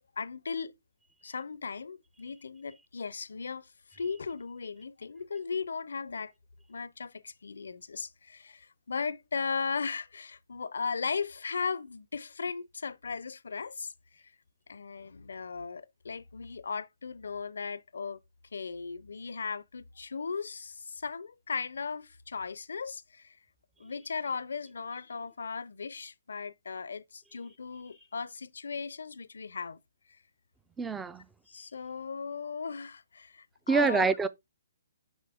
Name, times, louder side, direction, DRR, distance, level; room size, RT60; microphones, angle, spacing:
voice 1, 0.2-0.7 1.2-6.3 6.7-14.3 14.7-18.2 18.5-23.4 23.8-29.8 31.5-34.1, left 5 dB, 75° left, 0.5 m, -37 dB
voice 2, 30.8-31.2 33.7-34.3, right 4 dB, 10° right, 0.5 m, -26 dB
6.2 x 5.4 x 3.4 m
hypercardioid pair, 145°, 0 cm